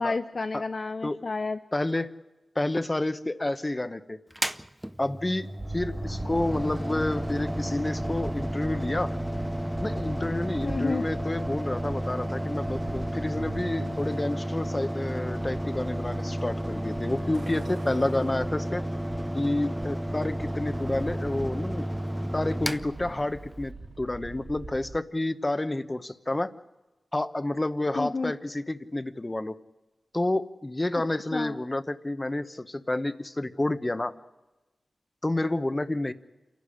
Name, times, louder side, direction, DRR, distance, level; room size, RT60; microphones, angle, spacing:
voice 1, 0.0-1.6 10.6-11.0 28.0-28.3 31.3-31.5, left 3 dB, 50° left, 9 dB, 0.7 m, -30 dB
voice 2, 1.7-2.1 2.5-4.2 5.0-5.5 5.7-9.1 9.8-18.8 19.3-21.9 22.3-26.5 27.1-29.5 30.1-34.1 35.2-36.1, left 2 dB, 20° left, 12 dB, 1.0 m, -29 dB
Mechanical fan, 4.3-23.7, equal, 5° right, 0.7 m, -32 dB
sound 1, 5.6-25.0, right 2 dB, 45° right, 2.2 m, -43 dB
Truck, 11.7-20.4, right 3 dB, 80° right, 1.5 m, -47 dB
28.0 x 11.5 x 9.9 m, 1.1 s
wide cardioid pair, 105°, 0 cm